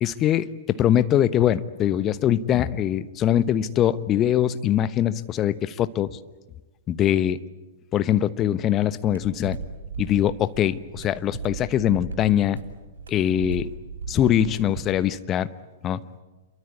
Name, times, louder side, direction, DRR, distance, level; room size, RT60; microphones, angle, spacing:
voice 1, 0.0-6.2 6.9-7.4 7.9-9.6 10.0-12.6 13.1-13.7 14.1-15.5 15.8-16.0, left 11 dB, 25° left, 14 dB, 1.0 m, -22 dB
sound 1, 9.1-15.0, right 5 dB, 70° right, 7.1 m, -37 dB
27.5 x 23.0 x 8.5 m, 1.2 s
figure-of-eight pair, 105°, 0 cm